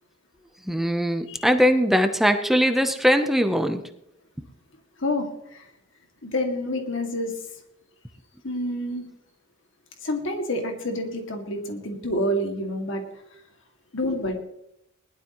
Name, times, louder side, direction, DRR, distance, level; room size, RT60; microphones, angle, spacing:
voice 1, 0.7-3.8, equal, ahead, 6 dB, 0.7 m, -21 dB
voice 2, 5.0-5.7 6.2-7.4 8.4-9.0 10.0-13.0 13.9-14.4, left 1 dB, 65° left, 3 dB, 2.2 m, -28 dB
20.5 x 12.0 x 3.0 m, 0.79 s
head